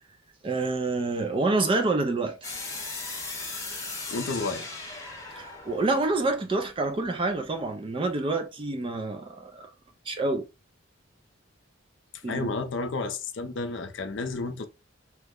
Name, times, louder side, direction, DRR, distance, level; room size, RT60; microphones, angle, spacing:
voice 1, 0.4-2.4 5.4-9.7 10.1-10.5 12.2-12.5, right 3 dB, 25° right, 0.3 m, -27 dB
sound 1, 2.4-7.3, left 3 dB, 15° left, 0.8 m, -38 dB
voice 2, 4.1-4.7 12.3-14.7, left 3 dB, 60° left, 0.5 m, -31 dB
2.9 x 2.1 x 3.5 m
head